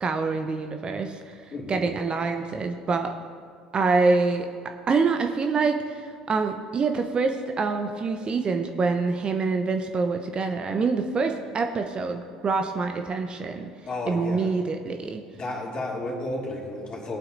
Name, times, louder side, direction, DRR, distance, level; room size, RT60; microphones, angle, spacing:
voice 1, 0.0-1.4 1.7-3.1 3.7-4.5 4.9-13.7 14.1-15.2, right 4 dB, 35° right, 5 dB, 0.8 m, -26 dB
voice 2, 1.5-1.9 13.9-14.5 15.3-17.2, left 2 dB, 35° left, -2 dB, 2.8 m, -32 dB
19.5 x 8.7 x 2.6 m, 2.1 s
figure-of-eight pair, 65°, 3 cm